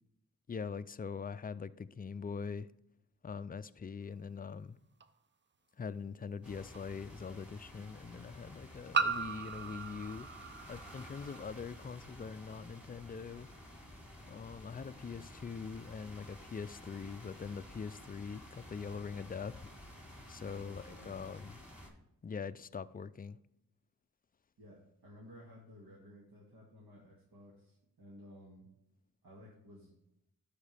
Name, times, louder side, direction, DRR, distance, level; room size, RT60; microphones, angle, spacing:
voice 1, 0.5-2.7 3.2-4.8 5.8-10.3 10.7-13.5 14.3-19.7 20.3-21.6 22.2-23.4, left 5 dB, 25° left, 0.4 m, -43 dB
sound 1, 5.0-5.1 6.7-6.8 8.9-11.4, right 5 dB, 30° right, 0.5 m, -36 dB
sound 2, 6.4-21.9, left 1 dB, 5° right, 3.4 m, -52 dB
voice 2, 20.4-21.2 24.6-28.7 29.2-29.9, equal, 70° right, 2.1 m, -55 dB
12.0 x 5.0 x 3.4 m
cardioid pair, 65°, 36 cm